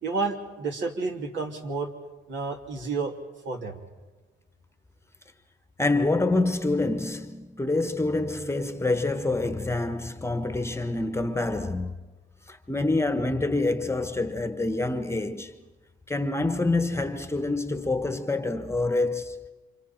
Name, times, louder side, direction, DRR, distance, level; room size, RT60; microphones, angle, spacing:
voice 1, 0.0-1.9 2.3-3.1 3.4-3.8, right 4 dB, 65° right, 2.9 m, -30 dB
voice 2, 5.8-11.9 12.5-15.5 16.1-19.5, left 2 dB, 15° left, 1.2 m, -26 dB
29.5 x 26.5 x 4.5 m
cardioid pair, 90°, 20 cm